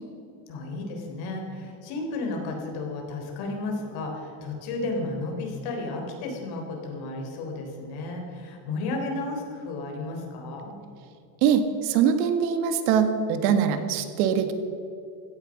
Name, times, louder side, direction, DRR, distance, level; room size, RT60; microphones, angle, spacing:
voice 1, 0.5-10.8, left 2 dB, 55° left, 2 dB, 3.8 m, -33 dB
voice 2, 11.4-14.5, right 7 dB, 85° right, 8 dB, 1.8 m, -23 dB
16.5 x 12.5 x 6.5 m, 2.7 s
cardioid pair, 170°, 45 cm